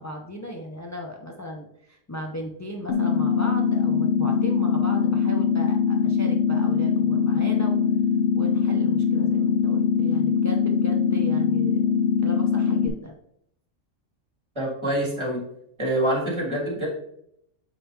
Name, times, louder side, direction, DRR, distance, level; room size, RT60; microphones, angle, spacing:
voice 1, 0.0-7.8 8.3-11.8 12.2-13.1, equal, 30° left, 1 dB, 0.3 m, -36 dB
sound 1, 2.9-12.9, left 6 dB, 60° left, 0.8 m, -22 dB
voice 2, 14.5-15.4 15.8-16.9, right 1 dB, 20° right, -4 dB, 2.7 m, -25 dB
7.4 x 5.7 x 2.8 m, 0.73 s
omnidirectional pair, 1.3 m